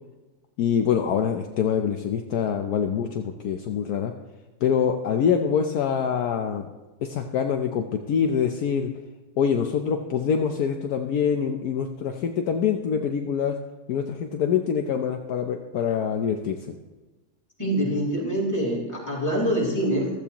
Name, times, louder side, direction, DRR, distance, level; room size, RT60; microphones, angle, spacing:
voice 1, 0.6-4.1 4.6-6.6 7.0-8.9 9.4-13.6 13.9-16.6, left 7 dB, 70° left, 4 dB, 1.2 m, -25 dB
voice 2, 17.6-20.1, equal, 10° left, -5 dB, 4.5 m, -25 dB
15.5 x 14.0 x 3.0 m, 1.2 s
omnidirectional pair, 1.8 m